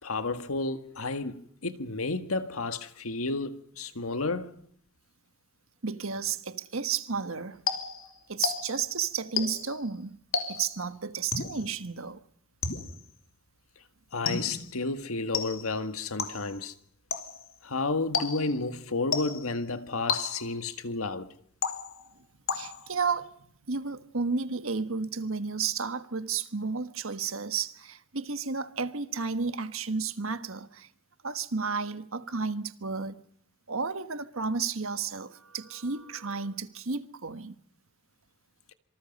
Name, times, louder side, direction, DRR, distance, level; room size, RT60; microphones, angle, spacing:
voice 1, 0.0-4.5 14.1-16.7 17.6-21.3, left 3 dB, 85° left, 1.8 m, -31 dB
voice 2, 5.8-7.6 8.3-10.2 10.5-12.2 22.5-23.4 23.7-30.9 31.2-33.2 33.7-37.6, right 5 dB, 75° right, 1.4 m, -32 dB
sound 1, 7.7-8.9 9.4-9.8 10.3-10.8 11.3-11.7 12.6-13.1 14.3-14.7 15.3-15.8 16.2-16.6 17.1-17.5 18.1-18.6 19.1-19.6 20.1-20.7 21.6-22.1 22.5-23.0, left 5 dB, 70° left, 2.9 m, -32 dB
26.5 x 25.0 x 5.4 m
head